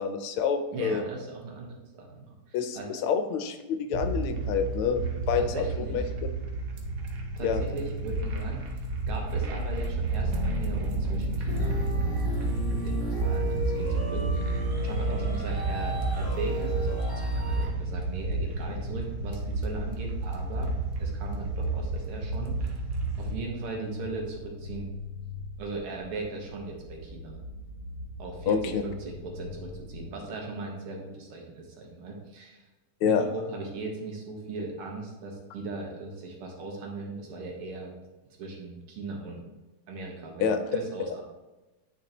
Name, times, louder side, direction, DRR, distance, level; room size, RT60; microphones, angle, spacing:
voice 1, 0.0-1.0 2.5-6.0 7.4-7.6 28.5-28.8 33.0-33.2 40.4-40.6, left 6 dB, 80° left, 8 dB, 1.5 m, -27 dB
voice 2, 0.7-2.9 5.4-6.1 7.4-8.7 9.1-12.3 12.8-14.6 14.8-22.7 23.2-24.9 25.6-27.4 28.2-32.7 33.0-37.9 38.3-39.4 39.9-41.2, right 3 dB, 80° right, 0 dB, 2.0 m, -38 dB
sound 1, 3.9-23.3, right 2 dB, 55° right, 1.0 m, -31 dB
sound 2, 11.5-17.7, right 1 dB, 25° left, 0.5 m, -31 dB
sound 3, 15.7-30.1, left 1 dB, 40° right, 0.6 m, -43 dB
9.2 x 4.5 x 2.9 m, 1.1 s
omnidirectional pair, 2.4 m